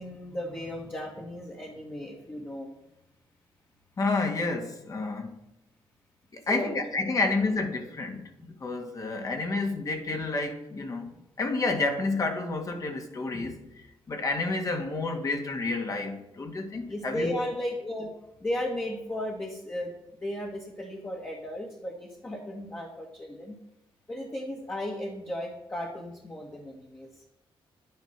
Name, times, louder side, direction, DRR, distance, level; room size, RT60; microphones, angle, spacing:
voice 1, 0.0-2.7 6.5-6.7 16.9-18.1 18.4-19.9 20.2-23.6 24.1-27.1, left 1 dB, 20° left, 0 dB, 1.8 m, -35 dB
voice 2, 4.0-5.4 6.3-8.3 8.6-11.1 11.4-13.6 14.1-17.3, left 3 dB, 35° left, 4 dB, 1.9 m, -29 dB
11.0 x 9.6 x 6.0 m, 0.86 s
wide cardioid pair, 145°, 10 cm